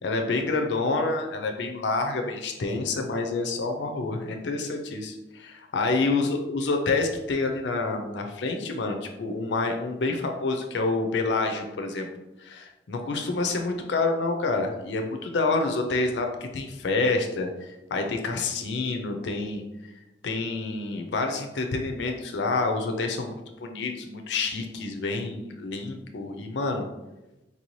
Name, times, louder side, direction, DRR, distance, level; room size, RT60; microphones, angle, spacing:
voice 1, 0.0-12.1 12.4-16.3 16.5-19.6 20.2-26.9, left 3 dB, 80° left, 4 dB, 0.5 m, -28 dB
4.3 x 2.7 x 3.0 m, 1.0 s
head